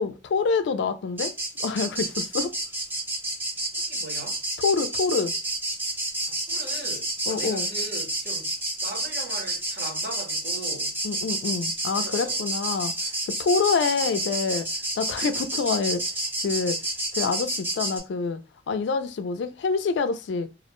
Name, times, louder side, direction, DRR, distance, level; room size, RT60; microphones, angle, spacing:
voice 1, 0.0-2.5 4.6-5.3 7.3-7.7 11.0-12.9 13.4-14.7 15.0-16.0 16.4-16.8 17.1-18.4 18.7-20.5, left 4 dB, 75° left, 0.3 m, -26 dB
sound 1, 1.2-18.0, right 1 dB, 10° right, 0.6 m, -29 dB
voice 2, 3.7-4.4 6.3-11.0 11.9-12.4, right 2 dB, 60° right, 0.9 m, -40 dB
2.4 x 2.1 x 2.9 m
head